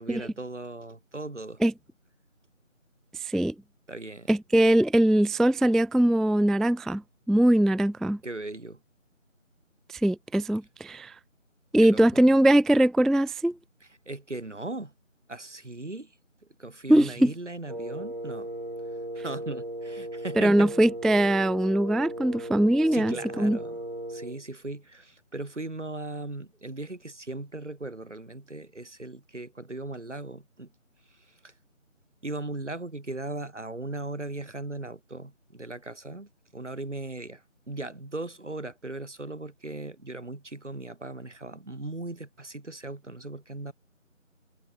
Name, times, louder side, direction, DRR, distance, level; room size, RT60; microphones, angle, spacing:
voice 1, 0.0-1.6 3.9-4.3 8.2-8.8 11.8-12.0 14.1-14.9 15.3-16.1 16.6-18.5 19.1-20.7 22.9-23.8 24.1-30.7 31.1-31.5 32.2-43.7, right 2 dB, 65° right, 2.8 m, -38 dB
voice 2, 3.2-3.5 4.3-7.0 7.3-8.2 9.9-11.1 11.7-13.6 16.9-17.3 20.4-23.6, right 1 dB, ahead, 0.4 m, -21 dB
Wind instrument woodwind instrument, 17.7-24.4, right 1 dB, 35° right, 1.8 m, -37 dB
figure-of-eight pair, 180°, 39 cm